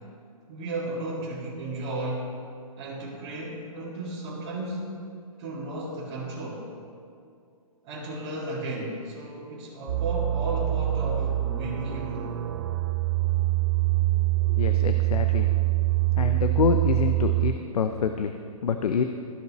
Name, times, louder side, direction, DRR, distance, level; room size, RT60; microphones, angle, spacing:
voice 1, 0.5-5.0 5.4-6.7 7.8-12.3, right 1 dB, 25° right, -11 dB, 2.0 m, -34 dB
sound 1, 9.9-17.5, right 16 dB, 40° right, 0.5 m, -25 dB
voice 2, 14.5-15.9 16.2-18.3 18.6-19.0, left 6 dB, 85° left, 7 dB, 0.6 m, -27 dB
15.0 x 5.2 x 3.1 m, 2.4 s
hypercardioid pair, 160°, 19 cm